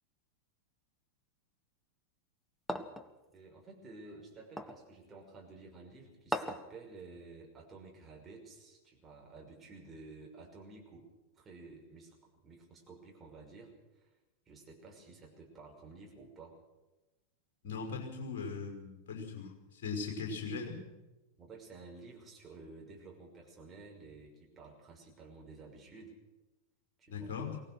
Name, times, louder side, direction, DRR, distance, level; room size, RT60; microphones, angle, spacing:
sound 1, 2.7-3.1 4.6-4.8 6.3-6.7, left 1 dB, 5° left, 1.3 m, -37 dB
voice 1, 3.3-11.1 11.3-14.1 14.5-16.6 21.4-26.2 27.0-27.4, right 3 dB, 20° right, -1 dB, 6.1 m, -52 dB
voice 2, 17.6-20.8 27.1-27.6, left 5 dB, 50° left, 2 dB, 5.6 m, -39 dB
23.5 x 18.0 x 6.4 m, 1.1 s
figure-of-eight pair, 90°, 0 cm